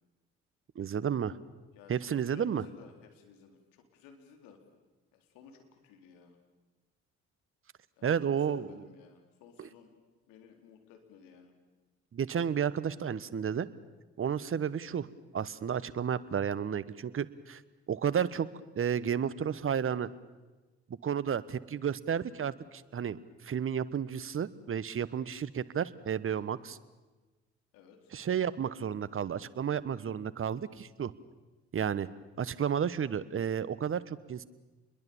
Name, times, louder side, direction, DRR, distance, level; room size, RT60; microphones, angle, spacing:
voice 1, 0.7-1.4 1.9-2.6 8.0-8.9 9.6-9.7 12.1-13.7 14.2-17.6 17.9-18.5 18.8-20.1 21.0-26.8 28.1-31.1 31.7-32.1 32.4-34.4, right 8 dB, 35° right, 17 dB, 1.2 m, -32 dB
voice 2, 2.2-4.6 5.1-6.4 8.0-9.9 10.3-11.5 26.3-26.6 27.7-28.1, left 7 dB, 70° left, 4 dB, 4.0 m, -56 dB
28.5 x 22.0 x 7.1 m, 1.2 s
hypercardioid pair, 50°, 35 cm